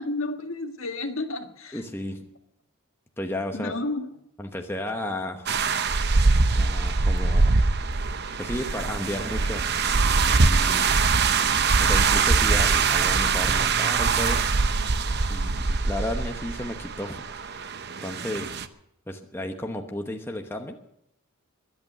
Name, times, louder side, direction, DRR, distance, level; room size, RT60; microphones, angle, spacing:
voice 1, 0.0-1.8 3.5-4.2, left 2 dB, 65° left, 6 dB, 1.6 m, -31 dB
voice 2, 1.7-2.2 3.2-3.7 4.4-5.5 6.5-7.5 8.4-9.6 10.3-10.9 11.8-14.4 15.3-17.5 18.0-18.5 19.1-20.8, left 1 dB, 10° left, 4 dB, 1.0 m, -33 dB
sound 1, 5.5-18.7, right 4 dB, 50° right, 0.8 m, -23 dB
22.0 x 8.8 x 6.8 m, 0.76 s
head